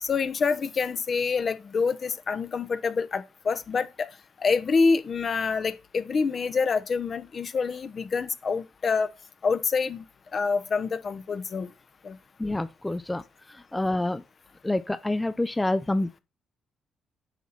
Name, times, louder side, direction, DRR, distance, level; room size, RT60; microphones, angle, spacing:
voice 1, 0.0-4.1 4.4-9.1 9.4-10.0 10.3-11.7 12.0-12.2, left 5 dB, 45° left, 1.0 m, -26 dB
voice 2, 12.4-13.2 13.7-14.2 14.6-16.2, left 2 dB, 10° left, 0.5 m, -27 dB
9.2 x 5.8 x 4.1 m
cardioid pair, 90°, 0 cm